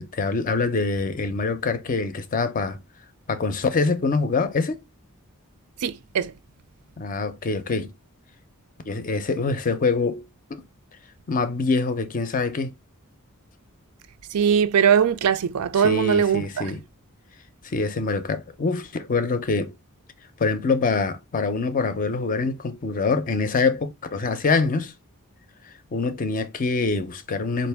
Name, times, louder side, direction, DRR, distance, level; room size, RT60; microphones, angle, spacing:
voice 1, 0.0-2.8 3.3-4.8 7.0-7.9 8.9-10.6 11.3-12.7 15.8-16.8 17.6-19.7 20.4-24.9 25.9-27.7, left 4 dB, 35° left, 0.5 m, -25 dB
voice 2, 5.8-6.3 14.3-16.7, right 7 dB, 80° right, 0.4 m, -21 dB
4.3 x 2.5 x 3.4 m
head